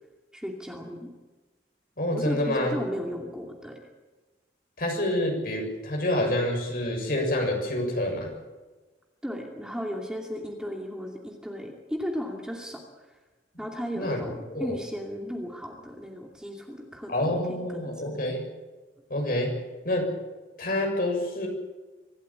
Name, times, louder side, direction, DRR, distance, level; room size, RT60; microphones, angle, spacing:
voice 1, 0.3-1.1 2.1-3.8 9.2-13.1 13.6-18.1, equal, 5° right, 1 dB, 2.6 m, -35 dB
voice 2, 2.0-2.7 4.8-8.3 14.0-14.2 14.5-14.8 17.1-18.4 19.1-19.5 19.8-20.1 20.6-21.5, left 1 dB, 55° left, 2 dB, 7.1 m, -27 dB
25.0 x 14.0 x 8.8 m, 1.2 s
head